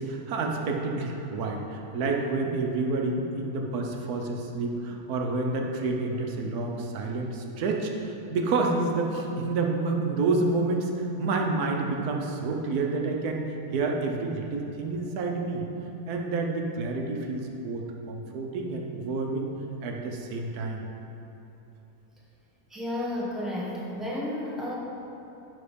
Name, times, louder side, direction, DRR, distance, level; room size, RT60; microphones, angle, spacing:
voice 1, 0.0-13.4 13.7-15.6 16.1-19.5 19.8-20.8, right 3 dB, 90° right, 1 dB, 1.3 m, -29 dB
voice 2, 22.7-24.7, left 1 dB, ahead, -5 dB, 1.1 m, -32 dB
11.5 x 4.0 x 5.1 m, 3.0 s
omnidirectional pair, 1.6 m